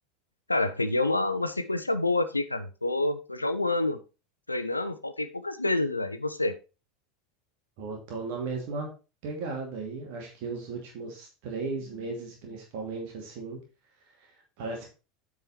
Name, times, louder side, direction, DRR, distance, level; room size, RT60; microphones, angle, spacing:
voice 1, 0.5-4.0 4.5-6.5, left 2 dB, 85° left, 11 dB, 0.8 m, -28 dB
voice 2, 7.8-8.9 9.2-13.6 14.2-14.3 14.6-14.9, right 4 dB, 55° right, 0 dB, 2.6 m, -36 dB
8.9 x 4.9 x 4.4 m, 0.32 s
figure-of-eight pair, 75°, 0 cm